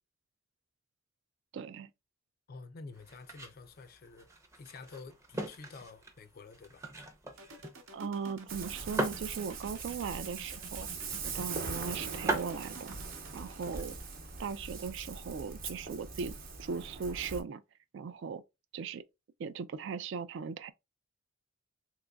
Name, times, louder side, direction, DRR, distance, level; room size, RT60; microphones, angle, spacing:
voice 1, 1.5-1.9 7.9-10.9 11.2-12.9 13.3-14.0 14.4-17.6 17.9-18.4 18.7-19.0 19.4-20.7, right 5 dB, 60° right, 0.3 m, -38 dB
voice 2, 2.5-4.3 4.6-6.9, left 4 dB, 45° left, 0.4 m, -49 dB
sound 1, 2.9-14.3, right 2 dB, 15° right, 0.5 m, -42 dB
sound 2, 7.4-15.1, right 2 dB, 85° right, 0.9 m, -50 dB
Ocean, 8.5-17.4, right 4 dB, 45° right, 0.8 m, -41 dB
3.8 x 3.0 x 2.2 m
head